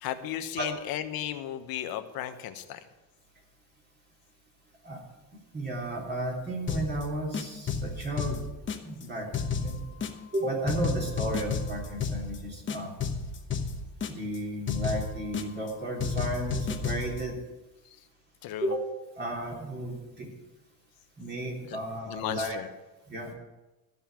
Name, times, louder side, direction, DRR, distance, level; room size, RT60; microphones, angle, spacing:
voice 1, 0.0-2.8 17.8-18.0 18.4-18.7 21.6-21.8 22.1-22.7, left 11 dB, 70° left, 9 dB, 1.1 m, -35 dB
voice 2, 5.5-8.4 8.8-9.3 9.6-9.8 10.3-12.9 14.1-17.4 18.6-18.8 19.2-20.3 21.2-22.6 23.1-23.3, right 1 dB, 25° right, -2 dB, 3.4 m, -33 dB
sound 1, 6.7-7.0 7.3-9.0 9.3-10.4 10.7-12.4 12.7-14.4 14.7-15.7 16.0-17.2, left 5 dB, 30° left, 1.1 m, -32 dB
14.0 x 5.6 x 7.5 m, 1.1 s
cardioid pair, 130°, 37 cm